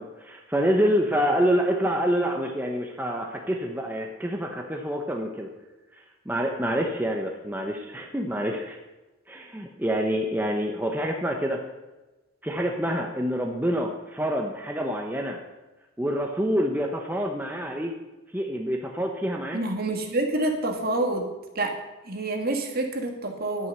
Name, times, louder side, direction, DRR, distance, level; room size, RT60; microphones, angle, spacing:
voice 1, 0.0-5.5 6.0-8.8 9.3-11.6 12.4-15.4 16.0-17.9 18.3-19.6, equal, 10° right, 1 dB, 0.9 m, -27 dB
voice 2, 19.5-21.3 21.5-21.8 22.0-23.7, right 2 dB, 45° right, 4 dB, 1.9 m, -27 dB
11.0 x 9.2 x 6.7 m, 1.1 s
head